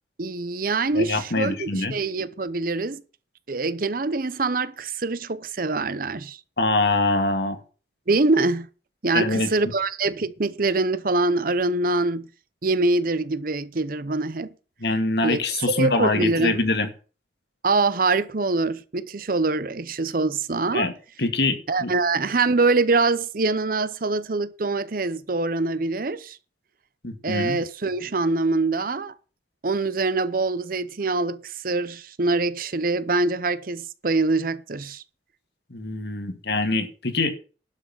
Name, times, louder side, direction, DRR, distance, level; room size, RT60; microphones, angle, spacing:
voice 1, 0.2-3.0 3.5-6.4 8.1-8.7 9.0-12.3 12.6-14.5 15.2-15.4 15.8-16.6 17.6-20.9 21.7-26.4 27.2-29.1 29.6-35.0, right 3 dB, 50° right, 0.8 m, -24 dB
voice 2, 0.9-1.9 6.6-7.6 9.1-9.5 14.8-16.9 20.7-20.9 21.2-21.9 27.0-27.6 35.7-37.3, left 2 dB, 65° left, 2.1 m, -24 dB
11.5 x 6.3 x 7.3 m
head